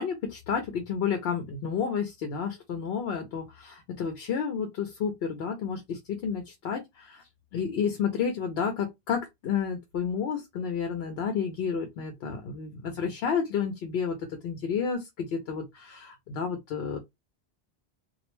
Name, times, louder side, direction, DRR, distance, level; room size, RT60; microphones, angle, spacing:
voice 1, 0.0-7.2 7.5-17.0, left 6 dB, 75° left, 0.8 m, -31 dB
2.4 x 2.1 x 3.0 m
omnidirectional pair, 1.1 m